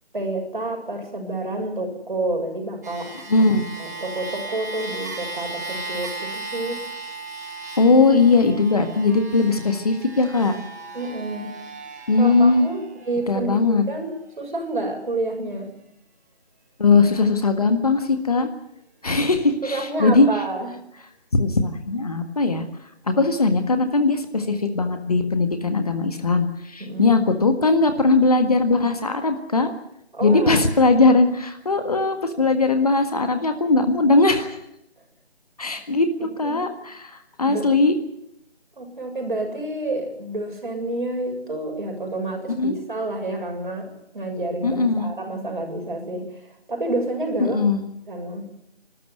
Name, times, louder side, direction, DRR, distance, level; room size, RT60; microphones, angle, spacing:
voice 1, 0.1-3.5 3.8-6.8 10.9-11.5 12.2-15.7 19.6-20.7 26.8-27.2 30.1-31.0 36.2-36.6 37.5-37.7 38.8-47.6 48.1-48.5, right 2 dB, 50° right, 2 dB, 7.0 m, -29 dB
sound 1, 2.8-13.3 14.0-14.1, right 2 dB, 15° right, 1.6 m, -36 dB
voice 2, 3.3-3.7 7.8-10.6 12.1-12.7 13.3-13.9 16.8-18.5 19.0-20.3 21.3-22.6 23.1-29.7 30.2-34.6 35.6-37.9 42.6-42.8 44.6-45.1 47.4-47.8, left 3 dB, 35° left, 7 dB, 1.7 m, -19 dB
26.5 x 12.5 x 9.5 m, 0.78 s
figure-of-eight pair, 165°, 32 cm